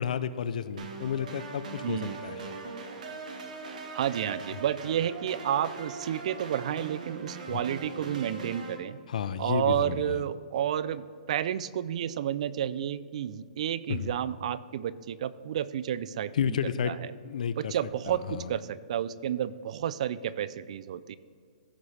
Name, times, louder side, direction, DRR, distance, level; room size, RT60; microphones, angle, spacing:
voice 1, 0.0-2.5 7.5-7.6 9.1-10.2 13.9-14.1 16.3-17.7 18.1-18.5, left 8 dB, 65° left, 13 dB, 0.5 m, -32 dB
sound 1, 0.8-8.8, right 4 dB, 70° right, 1.5 m, -41 dB
voice 2, 1.8-2.2 3.9-9.0 9.4-16.6 16.8-17.1 17.6-21.2, right 10 dB, 50° right, 17 dB, 0.4 m, -31 dB
15.5 x 5.5 x 3.3 m, 2.2 s
hypercardioid pair, 160°, 4 cm